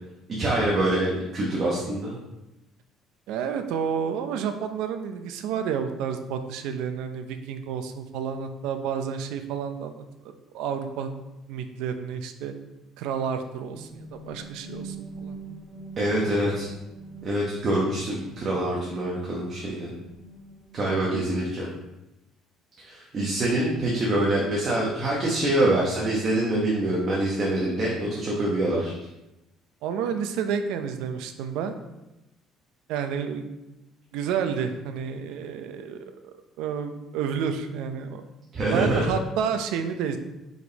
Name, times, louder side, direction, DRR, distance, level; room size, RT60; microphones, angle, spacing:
voice 1, 0.4-2.2 16.0-16.7 17.2-19.9 20.7-21.7 22.8-28.9 38.5-39.0, right 1 dB, 30° right, -4 dB, 1.1 m, -25 dB
voice 2, 3.3-10.0 10.5-11.1 11.5-12.5 13.0-15.4 29.8-31.8 32.9-33.5 34.1-38.2 38.7-40.2, right 7 dB, 80° right, 8 dB, 0.6 m, -30 dB
sound 1, 13.7-21.5, right 2 dB, 55° right, 1.7 m, -44 dB
5.3 x 4.9 x 4.0 m, 0.95 s
cardioid pair, 180°, 0 cm